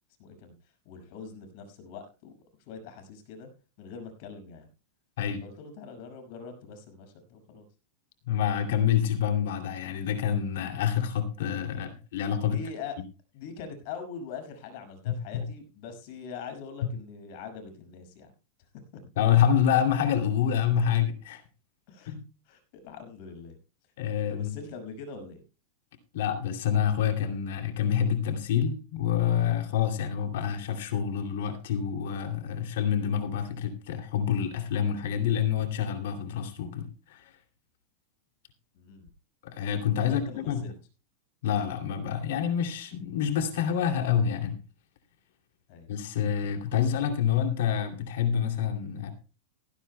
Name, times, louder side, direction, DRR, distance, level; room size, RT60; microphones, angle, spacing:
voice 1, 0.2-0.5 0.8-2.3 2.7-3.5 3.8-4.7 5.4-7.7 12.4-13.0 13.3-18.3 18.9-19.0 21.9-22.2 22.5-23.6 24.3-25.4 38.8-39.1 39.9-40.7 45.7-45.9, left 5 dB, 55° left, 6.0 m, -43 dB
voice 2, 8.3-12.6 15.1-15.5 19.2-21.4 22.1-22.2 24.0-24.5 26.1-37.3 39.4-40.6 41.4-44.6 45.9-49.1, left 9 dB, 75° left, 2.7 m, -27 dB
16.5 x 16.5 x 2.2 m
supercardioid pair, 150°, 0 cm